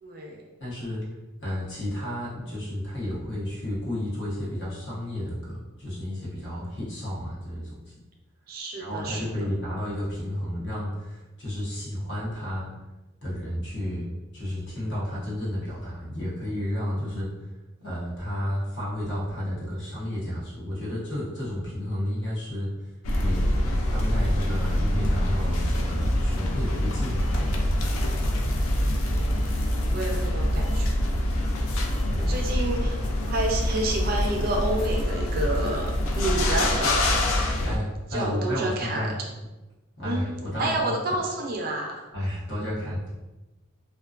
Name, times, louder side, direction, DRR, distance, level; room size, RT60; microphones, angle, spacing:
voice 1, 0.0-0.4 6.6-6.7 8.5-9.3 29.0-29.3 29.9-30.9 32.2-33.0 33.3-37.0 38.1-39.1 40.0-40.3 40.6-42.0, right 2 dB, 45° right, 1 dB, 0.3 m, -29 dB
voice 2, 0.6-1.0 1.4-7.8 8.8-12.7 13.2-14.1 14.3-17.3 17.8-22.7 23.2-27.7 32.1-32.4 37.6-39.1 40.0-41.0 42.1-43.2, left 1 dB, 55° left, -6 dB, 0.9 m, -32 dB
sound 1, 23.0-37.8, left 1 dB, 85° left, 0.4 m, -25 dB
2.4 x 2.2 x 2.3 m, 1.1 s
head